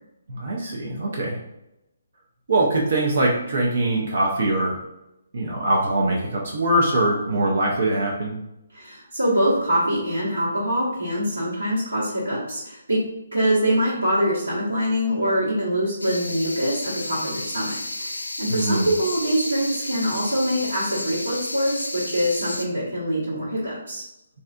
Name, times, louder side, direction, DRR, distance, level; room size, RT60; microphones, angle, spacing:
voice 1, 0.3-1.4 2.5-4.8 5.3-8.4 18.5-18.9, right 1 dB, 60° right, -2 dB, 0.6 m, -22 dB
voice 2, 8.7-13.0 13.3-24.0, equal, 80° right, -10 dB, 1.1 m, -24 dB
sound 1, 16.0-22.7, left 2 dB, 85° left, 0.4 m, -32 dB
3.2 x 2.7 x 2.4 m, 0.88 s
figure-of-eight pair, 140°, 0 cm